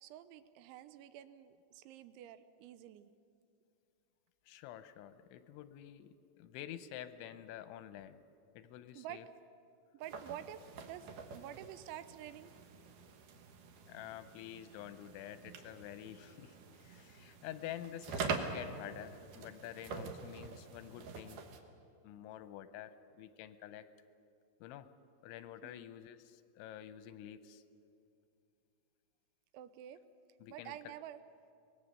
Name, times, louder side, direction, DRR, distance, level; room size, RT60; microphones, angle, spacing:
voice 1, 0.0-3.1 9.0-9.2 9.9-12.5 25.6-25.9 29.5-30.0 30.5-31.2, right 11 dB, 85° right, 13 dB, 3.1 m, -49 dB
voice 2, 4.5-8.2 8.6-9.3 13.9-21.4 22.0-22.9 23.2-23.9 24.6-24.9 25.2-27.6 30.4-30.9, left 11 dB, 90° left, 12 dB, 3.1 m, -49 dB
sound 1, 10.0-21.6, right 5 dB, 65° right, 2.2 m, -45 dB
24.0 x 19.5 x 6.7 m, 2.5 s
omnidirectional pair, 5.4 m